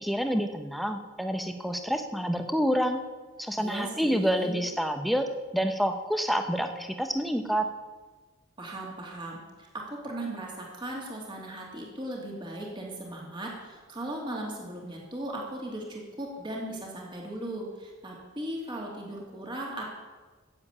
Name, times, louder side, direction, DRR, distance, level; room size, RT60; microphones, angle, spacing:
voice 1, 0.0-3.0 3.4-5.3 5.5-7.7, equal, ahead, 6 dB, 1.0 m, -28 dB
voice 2, 3.6-4.6 8.6-19.9, right 1 dB, 25° right, -2 dB, 2.7 m, -37 dB
15.0 x 7.8 x 8.5 m, 1.3 s
head